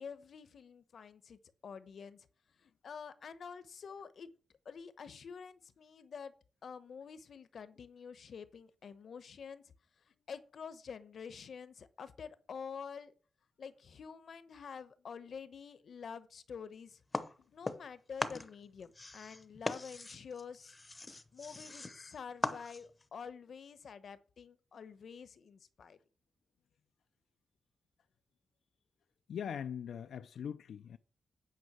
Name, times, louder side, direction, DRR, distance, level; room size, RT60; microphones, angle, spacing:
voice 1, 0.0-2.3 2.6-4.3 4.6-6.3 6.6-9.6 10.3-13.1 13.6-17.0 17.5-20.7 21.1-26.0, left 6 dB, 55° left, 0.9 m, -48 dB
sound 1, 17.1-17.9 18.2-23.1, left 2 dB, 20° left, 0.7 m, -40 dB
voice 2, 29.3-31.0, left 8 dB, 85° left, 0.5 m, -41 dB
9.4 x 5.5 x 7.3 m
wide cardioid pair, 175°, 0 cm